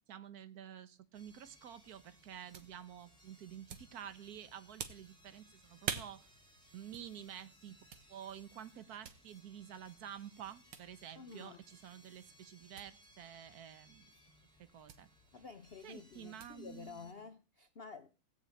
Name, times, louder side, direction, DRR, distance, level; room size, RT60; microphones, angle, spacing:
voice 1, 0.1-6.3 6.7-7.8 8.1-14.1 14.6-15.1 15.8-17.1, right 10 dB, 55° right, 1.2 m, -50 dB
sound 1, 1.1-17.1, equal, ahead, 3.0 m, -64 dB
sound 2, 1.7-17.3, right 8 dB, 85° right, 2.1 m, -51 dB
voice 2, 11.2-11.6 15.3-18.1, left 5 dB, 55° left, 0.6 m, -51 dB
16.5 x 5.9 x 8.5 m
omnidirectional pair, 2.3 m